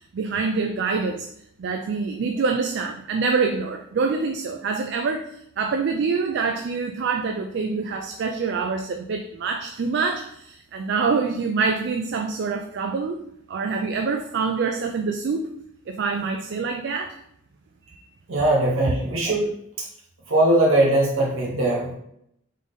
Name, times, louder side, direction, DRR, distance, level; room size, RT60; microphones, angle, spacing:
voice 1, 0.1-1.3 1.6-5.3 5.6-13.2 13.5-15.5 15.9-17.1 17.9-18.0, right 4 dB, 55° right, 5 dB, 0.3 m, -25 dB
voice 2, 18.3-19.5 20.3-21.9, right 1 dB, 80° right, -3 dB, 1.0 m, -20 dB
3.7 x 3.5 x 3.8 m, 0.74 s
head